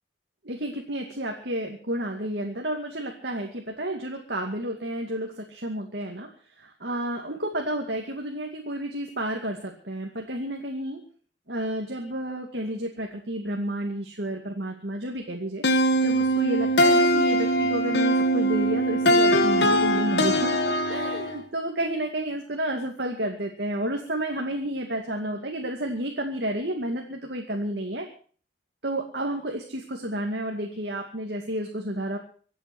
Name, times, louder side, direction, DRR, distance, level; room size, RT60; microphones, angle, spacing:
voice 1, 0.4-6.3 6.6-11.0 11.5-15.6 16.0-28.1 28.8-32.2, right 1 dB, 55° right, 1 dB, 2.4 m, -31 dB
sound 1, 15.6-21.4, equal, 60° left, 1.7 m, -22 dB
25.0 x 8.4 x 6.1 m, 0.43 s
head